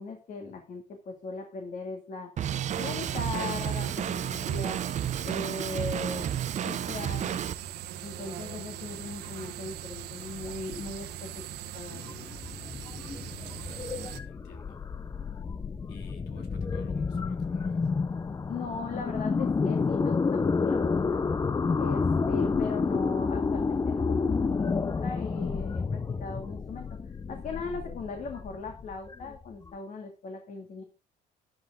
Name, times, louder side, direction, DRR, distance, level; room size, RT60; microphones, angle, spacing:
voice 1, 0.0-2.3 2.8-4.8 5.2-6.3 6.6-7.4 8.0-11.5 11.7-12.2 18.5-21.2 21.8-27.0 27.3-30.8, left 4 dB, 50° left, 4 dB, 2.2 m, -38 dB
Drum kit, 2.4-7.5, right 9 dB, 45° right, 0.7 m, -31 dB
sound 1, 2.7-14.2, right 11 dB, 80° right, 1.4 m, -41 dB
sound 2, 11.9-29.7, left 4 dB, 20° left, 0.6 m, -30 dB
voice 2, 13.4-13.8 14.2-14.8 15.9-18.0, left 4 dB, 80° left, 4 dB, 3.3 m, -53 dB
11.5 x 10.0 x 3.7 m, 0.31 s
cardioid pair, 110°, 17 cm